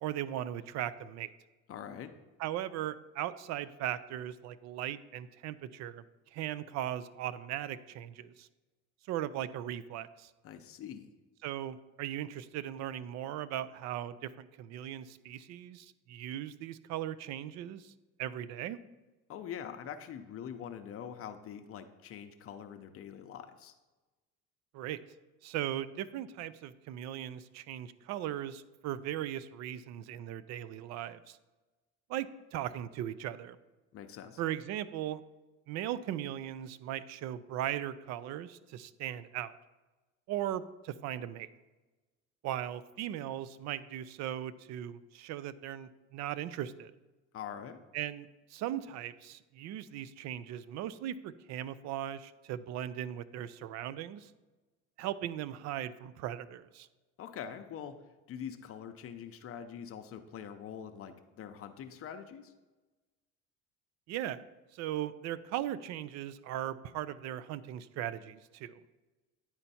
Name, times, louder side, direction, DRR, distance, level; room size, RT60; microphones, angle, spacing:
voice 1, 0.0-1.3 2.4-6.0 6.3-8.5 9.1-10.3 11.4-17.9 18.2-18.8 24.7-25.0 25.4-31.4 32.1-33.6 34.4-35.2 35.7-39.5 40.3-41.5 42.4-46.9 47.9-54.3 55.0-56.9 64.1-64.4 64.7-68.8, right 12 dB, 65° right, 16 dB, 0.5 m, -38 dB
voice 2, 1.7-2.1 10.4-11.1 19.3-23.7 33.9-34.4 47.3-47.8 57.2-57.9 58.3-62.5, left 8 dB, 50° left, 7 dB, 0.6 m, -44 dB
9.7 x 4.4 x 4.1 m, 1.2 s
cardioid pair, 100°, 29 cm